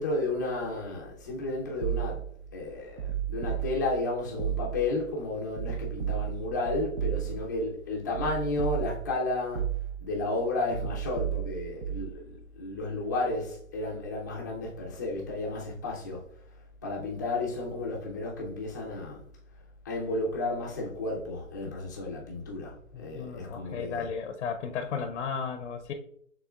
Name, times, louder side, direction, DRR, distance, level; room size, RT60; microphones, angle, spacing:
voice 1, 0.0-2.2 2.5-9.7 10.0-16.2 16.8-19.2 19.8-24.1, left 2 dB, 15° left, 0.4 m, -32 dB
sound 1, 1.8-2.4 3.0-4.1 4.4-5.0 5.6-7.6 8.1-9.2 9.6-10.2 10.7-12.1, right 10 dB, 55° right, 0.8 m, -33 dB
voice 2, 22.9-25.9, left 6 dB, 60° left, 0.6 m, -34 dB
5.9 x 3.6 x 2.3 m
hypercardioid pair, 150°, 40 cm